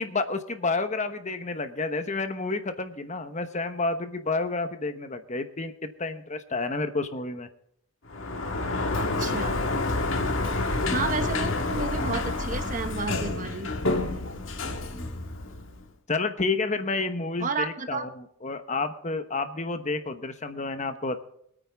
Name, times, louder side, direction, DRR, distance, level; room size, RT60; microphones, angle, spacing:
voice 1, 0.0-7.5 14.7-15.2 16.1-21.2, left 3 dB, 35° left, 9 dB, 1.1 m, -30 dB
Sliding door, 8.1-15.9, left 2 dB, 70° left, 1.8 m, -28 dB
voice 2, 9.0-9.6 10.9-13.7 17.4-18.1, right 4 dB, 40° right, 8 dB, 1.2 m, -31 dB
24.0 x 9.1 x 3.5 m, 0.72 s
head